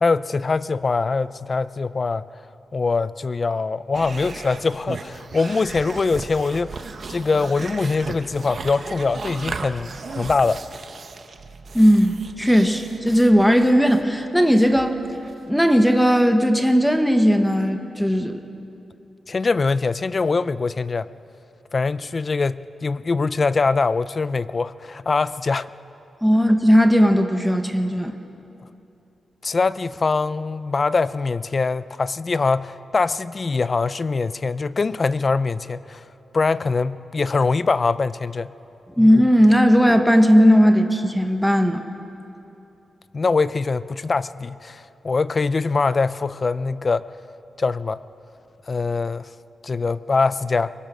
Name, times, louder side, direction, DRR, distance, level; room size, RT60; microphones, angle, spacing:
voice 1, 0.0-2.3 2.7-6.8 7.1-10.6 19.3-21.1 21.7-25.7 29.4-36.0 36.3-38.5 39.0-39.1 43.1-47.1 47.6-48.0 48.7-49.3 49.6-50.7, left 4 dB, 35° left, 16 dB, 0.5 m, -23 dB
sound 1, 3.9-15.7, right 4 dB, 50° right, 1.1 m, -36 dB
voice 2, 11.7-15.0 15.5-18.4 26.2-28.1 39.0-41.8, equal, ahead, 6 dB, 1.2 m, -17 dB
23.0 x 22.0 x 6.2 m, 2.8 s
wide cardioid pair, 115°, 0 cm